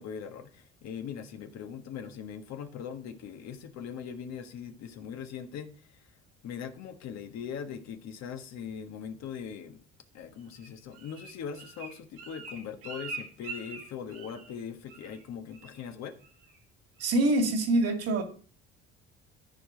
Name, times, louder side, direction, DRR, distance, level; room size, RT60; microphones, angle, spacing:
voice 1, 0.0-6.1 6.4-9.8 10.1-16.2, left 7 dB, 65° left, 1.4 m, -41 dB
Bird, 10.5-14.6 14.9-15.2 15.5-15.9 16.2-16.6 17.0-17.1, right 4 dB, 85° right, 2.7 m, -44 dB
voice 2, 17.0-18.2, right 2 dB, 55° right, 2.2 m, -25 dB
13.5 x 4.8 x 3.9 m
supercardioid pair, 70°, 29 cm